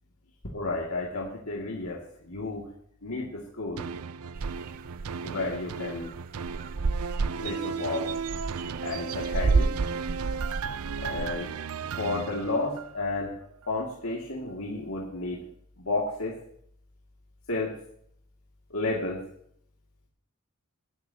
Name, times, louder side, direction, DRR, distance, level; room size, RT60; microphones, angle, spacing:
voice 1, 0.5-2.7 3.0-3.8 5.2-6.1 7.4-8.1 8.8-9.7 11.0-11.6 11.9-13.4 13.7-15.4 15.8-16.4 17.5-17.7 18.7-19.2, left 2 dB, 85° left, -3 dB, 2.4 m, -32 dB
sound 1, 3.8-13.2 13.6-13.7, right 5 dB, 90° right, 0.5 m, -36 dB
sound 2, 4.3-5.1 5.5-5.6 5.9-6.2 6.4-11.4, right 4 dB, 45° right, 0.4 m, -30 dB
19.5 x 12.5 x 2.9 m, 0.68 s
head